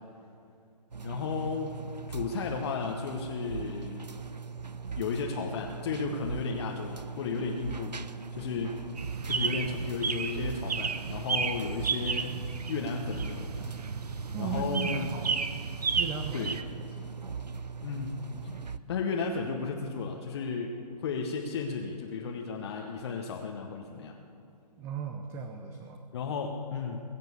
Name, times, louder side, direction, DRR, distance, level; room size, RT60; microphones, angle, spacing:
sound 1, 0.9-18.8, right 5 dB, 90° right, 0.7 m, -40 dB
voice 1, 1.0-1.7 2.1-4.2 5.0-8.0 8.3-8.8 9.3-12.4 12.7-13.7 14.4-15.1 16.3-16.6 17.8-18.2 18.4-18.5 18.9-24.1 26.1-27.0, left 5 dB, 40° left, 1 dB, 1.1 m, -34 dB
sound 2, 9.0-16.6, right 5 dB, 70° right, 1.0 m, -33 dB
voice 2, 14.3-15.5 16.0-16.5 16.9-17.1 24.8-26.0, right 5 dB, 10° right, 6 dB, 0.5 m, -37 dB
22.0 x 7.6 x 6.9 m, 2.6 s
figure-of-eight pair, 135°, 21 cm